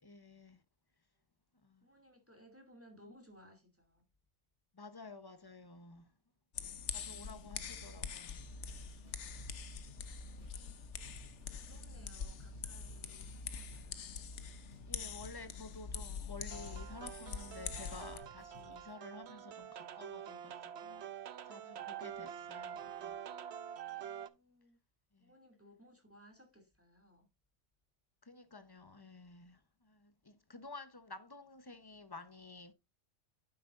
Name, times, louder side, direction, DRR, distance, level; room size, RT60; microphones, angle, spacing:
voice 1, 0.0-0.6 1.6-1.8 4.7-6.1 6.9-8.4 9.3-9.6 14.9-21.1 21.4-23.2 23.9-24.1 25.1-25.3 28.2-32.7, left 3 dB, 20° left, 0.9 m, -52 dB
voice 2, 1.8-4.0 7.0-7.8 9.9-10.8 11.6-14.3 21.2-21.3 21.7-22.5 24.0-24.8 25.2-27.3, equal, 10° right, 2.5 m, -62 dB
sound 1, 6.5-18.2, left 6 dB, 75° left, 1.2 m, -44 dB
sound 2, 8.4-8.7 9.0-10.7 11.0-12.1 12.4-14.1 14.4-16.1 16.4-17.4 17.7-18.9, left 2 dB, 40° left, 2.8 m, -60 dB
sound 3, 16.5-24.3, right 9 dB, 65° right, 0.9 m, -46 dB
9.9 x 7.6 x 2.5 m
omnidirectional pair, 1.2 m